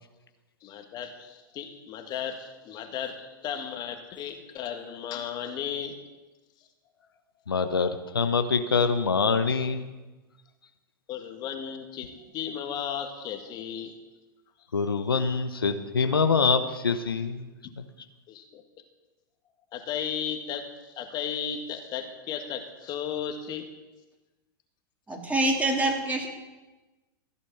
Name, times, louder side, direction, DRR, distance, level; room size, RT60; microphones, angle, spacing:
voice 1, 0.6-6.0 11.1-13.9 14.8-15.0 18.3-18.6 19.7-23.7, left 8 dB, 35° left, 5 dB, 2.0 m, -35 dB
voice 2, 7.5-9.9 14.7-17.5, left 5 dB, 85° left, 9 dB, 0.9 m, -25 dB
voice 3, 25.1-26.3, right 2 dB, 10° right, 1 dB, 3.1 m, -25 dB
15.5 x 8.4 x 7.0 m, 1.2 s
hypercardioid pair, 100°, 12 cm